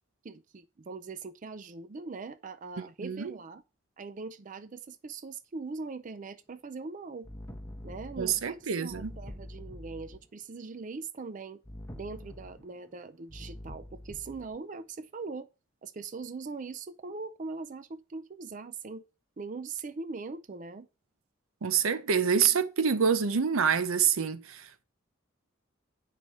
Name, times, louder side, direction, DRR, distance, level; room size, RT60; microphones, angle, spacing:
voice 1, 0.2-3.6 4.0-7.3 7.8-11.6 11.9-15.5 15.8-19.1 19.4-20.9, right 4 dB, 40° right, 0.4 m, -41 dB
sound 1, 7.2-10.3 11.6-12.8 13.3-14.5, left 1 dB, 15° left, 1.0 m, -45 dB
voice 2, 8.2-9.1 21.6-24.8, right 7 dB, 85° right, 0.6 m, -27 dB
9.2 x 4.9 x 4.1 m
head